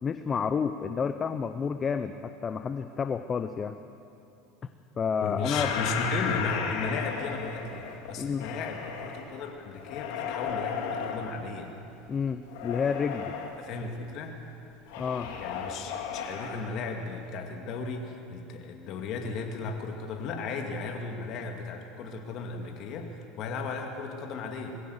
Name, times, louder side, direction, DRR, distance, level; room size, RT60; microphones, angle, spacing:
voice 1, 0.0-3.7 5.0-5.7 8.2-8.5 12.1-13.3 15.0-15.3, left 6 dB, 25° left, 10 dB, 0.7 m, -30 dB
voice 2, 5.2-11.7 13.6-14.4 15.4-24.8, left 4 dB, 50° left, 3 dB, 2.3 m, -35 dB
sound 1, 5.4-9.2 9.8-11.2 12.5-13.6 14.9-16.7, left 7 dB, 75° left, 2.8 m, -34 dB
21.0 x 16.0 x 8.1 m, 2.8 s
supercardioid pair, 125°, 0 cm